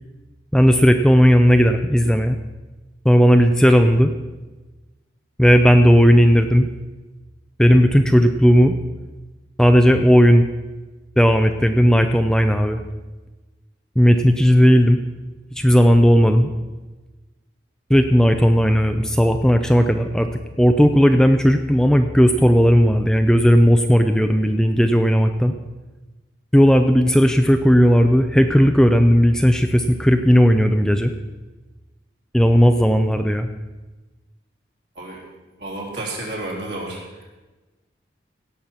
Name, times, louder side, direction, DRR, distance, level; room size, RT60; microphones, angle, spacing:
voice 1, 0.5-2.4 3.0-4.1 5.4-6.7 7.6-8.8 9.6-10.4 11.2-12.8 14.0-15.0 15.6-16.5 17.9-20.3 20.6-25.5 26.5-31.1 32.3-33.5, equal, 5° left, 6 dB, 0.4 m, -15 dB
voice 2, 35.6-37.2, right 2 dB, 65° right, -3 dB, 3.6 m, -31 dB
17.0 x 6.0 x 7.2 m, 1.2 s
head